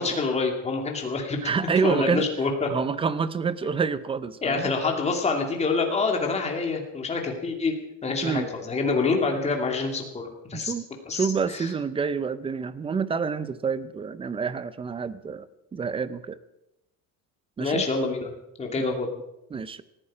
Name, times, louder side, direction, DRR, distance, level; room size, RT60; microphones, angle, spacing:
voice 1, 0.0-1.5 1.8-2.7 4.4-7.7 8.0-10.7 11.1-11.7 17.6-18.3 18.6-19.1, left 4 dB, 20° left, 2 dB, 2.6 m, -26 dB
voice 2, 1.4-2.2 2.7-4.7 8.2-8.5 10.5-10.9 11.1-15.5 15.7-16.4 17.6-17.8 18.8-18.9 19.5-19.8, right 5 dB, 15° right, 15 dB, 0.5 m, -27 dB
19.0 x 14.5 x 5.0 m, 0.87 s
cardioid pair, 170°, 37 cm